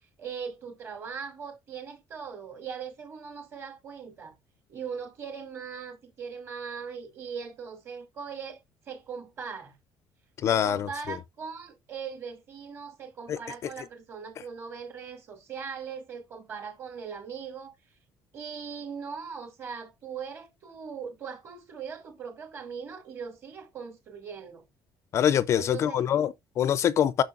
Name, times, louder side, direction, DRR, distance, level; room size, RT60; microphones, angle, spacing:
voice 1, 0.2-4.4 4.7-8.6 8.9-9.7 10.5-17.7 18.3-24.6 25.5-26.1, right 6 dB, 35° right, 2.7 m, -40 dB
voice 2, 10.4-10.9 13.3-13.4 25.1-27.2, left 9 dB, 40° left, 0.4 m, -24 dB
10.5 x 6.4 x 2.5 m
cardioid pair, 175°, 8 cm